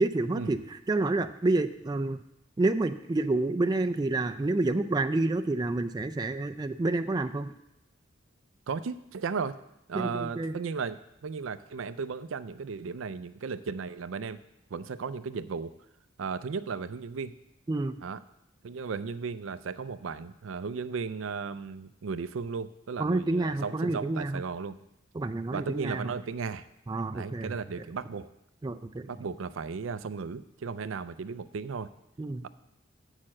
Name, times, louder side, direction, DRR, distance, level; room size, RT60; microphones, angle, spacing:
voice 1, 0.0-2.2 2.6-7.5 9.9-10.5 17.7-18.0 23.0-24.4 25.1-26.1 26.9-27.6 28.6-29.1 32.2-32.5, right 2 dB, 20° right, 8 dB, 0.3 m, -29 dB
voice 2, 8.7-9.6 9.9-14.4 14.7-15.7 16.2-17.3 18.0-18.2 18.6-24.8 25.5-26.7 27.1-28.3 29.1-31.9, right 5 dB, 90° right, 13 dB, 0.5 m, -35 dB
7.2 x 6.5 x 7.5 m, 0.84 s
head